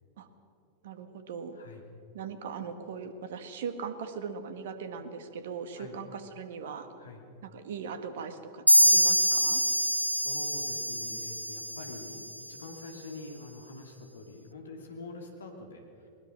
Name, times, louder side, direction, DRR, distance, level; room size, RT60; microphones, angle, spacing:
voice 1, 0.8-1.6 2.1-6.9 7.4-9.6, right 6 dB, 55° right, 10 dB, 1.7 m, -39 dB
voice 2, 1.5-1.8 5.7-6.0 7.0-7.2 10.1-16.1, left 3 dB, 70° left, 3 dB, 2.5 m, -45 dB
sound 1, 8.7-12.3, equal, 90° right, 0.4 m, -25 dB
20.0 x 20.0 x 6.5 m, 2.8 s
figure-of-eight pair, 90°, 0 cm